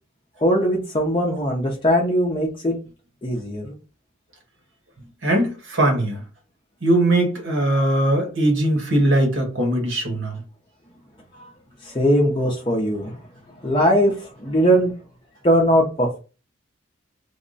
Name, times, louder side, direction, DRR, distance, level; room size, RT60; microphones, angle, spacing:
voice 1, 0.4-2.8 3.2-3.7 11.4-11.5 11.8-13.2 13.6-14.9 15.4-16.2, equal, 25° left, 0.6 m, -20 dB
voice 2, 5.2-6.2 6.8-10.4, right 1 dB, 70° right, 1.3 m, -20 dB
3.5 x 2.1 x 3.9 m
head